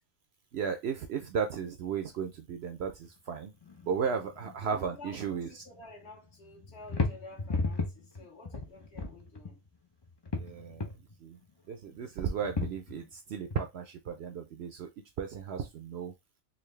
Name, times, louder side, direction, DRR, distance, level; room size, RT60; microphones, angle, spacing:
voice 1, 0.5-3.5 3.8-5.6 10.4-10.9 11.2-11.4 11.7-14.9 15.2-16.1, right 6 dB, 60° right, 0.7 m, -35 dB
sound 1, 3.6-5.0 5.3-6.1 6.5-9.7 10.0-11.1 12.0-13.1 13.5-13.6, left 3 dB, 40° left, 0.4 m, -35 dB
voice 2, 4.7-9.6, left 2 dB, 55° left, 1.4 m, -51 dB
3.8 x 2.6 x 3.2 m
omnidirectional pair, 1.4 m